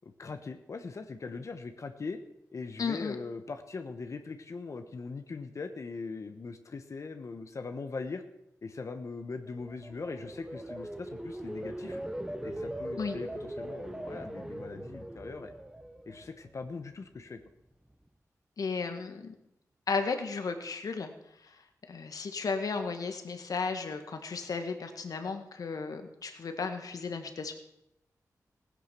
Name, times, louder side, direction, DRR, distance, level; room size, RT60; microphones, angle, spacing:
voice 1, 0.0-2.2 2.5-8.2 8.6-12.0 12.4-15.5 16.1-17.4, left 4 dB, 50° left, 7 dB, 1.1 m, -40 dB
voice 2, 2.8-3.2 13.0-13.2 18.6-19.4 19.9-21.1 21.9-27.5, left 4 dB, 70° left, 7 dB, 1.8 m, -34 dB
sound 1, 9.4-16.6 17.0-17.4, right 1 dB, 10° right, 1.0 m, -40 dB
16.5 x 10.0 x 6.0 m, 0.83 s
cardioid pair, 75°, 6 cm